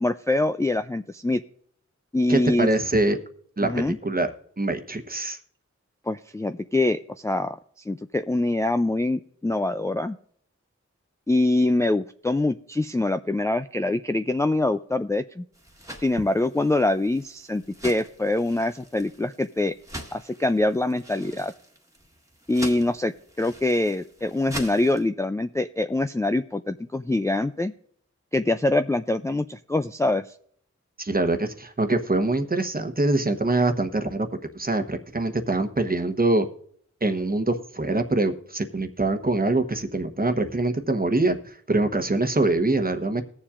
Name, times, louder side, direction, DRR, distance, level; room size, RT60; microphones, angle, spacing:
voice 1, 0.0-1.4 2.1-2.7 3.6-4.0 6.1-10.2 11.3-15.4 16.0-19.7 20.1-21.5 22.5-23.1 23.4-27.7 28.3-30.2, left 2 dB, 10° left, 8 dB, 0.3 m, -24 dB
voice 2, 2.3-3.2 3.6-4.3 4.6-5.4 31.0-34.3 34.5-36.5 37.0-43.2, right 2 dB, 30° right, 6 dB, 1.0 m, -24 dB
sound 1, 15.5-25.0, right 1 dB, 10° right, 1.5 m, -42 dB
20.5 x 7.1 x 2.5 m, 0.62 s
cardioid pair, 45°, 30 cm